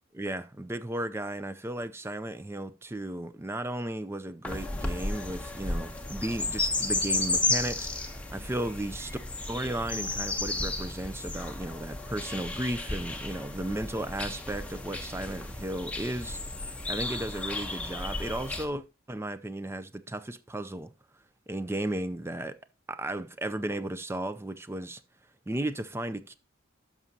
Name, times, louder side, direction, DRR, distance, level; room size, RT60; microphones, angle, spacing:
voice 1, 0.1-9.2 9.5-20.9 21.5-22.6 22.9-25.0 25.5-26.3, right 1 dB, 10° right, 0.4 m, -35 dB
sound 1, 4.4-18.7, left 2 dB, 5° left, 0.9 m, -33 dB
11.0 x 6.1 x 2.8 m
head